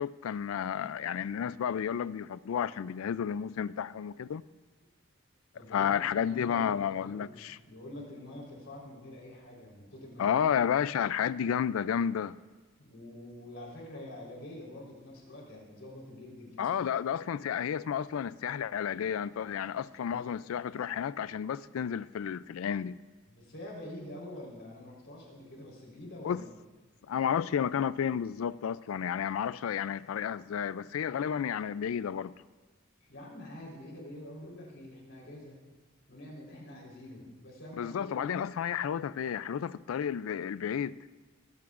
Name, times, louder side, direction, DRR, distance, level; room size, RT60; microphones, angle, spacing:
voice 1, 0.0-4.4 5.7-7.6 10.2-12.4 16.6-23.0 26.2-26.4 27.1-32.3 37.8-41.0, left 8 dB, 80° left, 0.3 m, -31 dB
voice 2, 5.5-10.5 12.8-17.2 20.0-20.4 23.3-26.6 33.0-35.6 36.1-38.5, left 1 dB, 65° left, 3.9 m, -46 dB
21.0 x 15.0 x 2.5 m
head